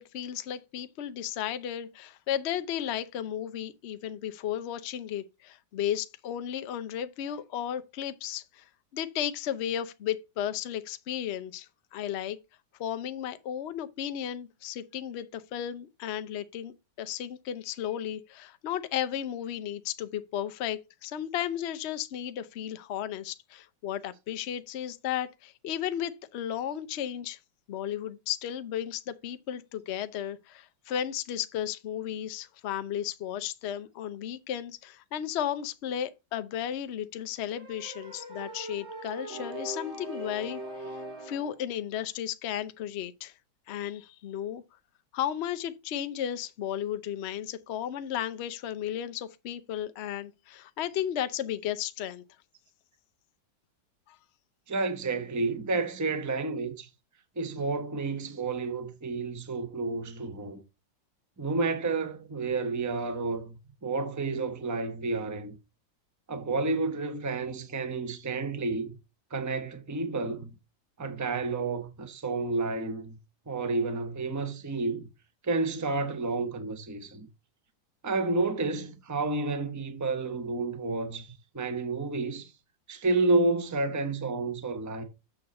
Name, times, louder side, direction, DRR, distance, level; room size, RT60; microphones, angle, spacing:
voice 1, 0.0-8.6 8.9-12.4 12.8-27.4 27.7-41.0 41.2-43.3 43.7-44.6 45.1-52.2 54.1-54.2, left 10 dB, 75° left, 0.6 m, -34 dB
sound 1, 37.5-41.6, right 1 dB, 35° right, 2.0 m, -40 dB
voice 2, 54.7-56.9 57.4-60.6 61.4-65.5 66.3-68.9 69.3-70.5 71.0-73.2 73.5-75.1 75.4-77.3 78.0-82.5 82.9-85.0, right 3 dB, 15° right, 0.7 m, -30 dB
7.0 x 6.8 x 4.1 m
omnidirectional pair, 2.0 m